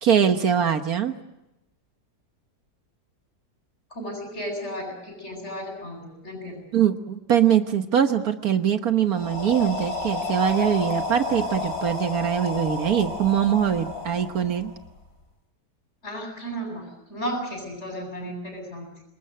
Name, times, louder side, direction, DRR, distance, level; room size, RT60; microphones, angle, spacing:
voice 1, 0.0-1.1 6.7-14.7, right 8 dB, 65° right, 8 dB, 1.6 m, -22 dB
voice 2, 3.9-6.6 16.0-18.9, equal, 40° left, 3 dB, 8.2 m, -34 dB
sound 1, 9.1-15.0, left 3 dB, 65° left, 3.2 m, -31 dB
28.5 x 20.0 x 7.8 m, 0.94 s
omnidirectional pair, 1.8 m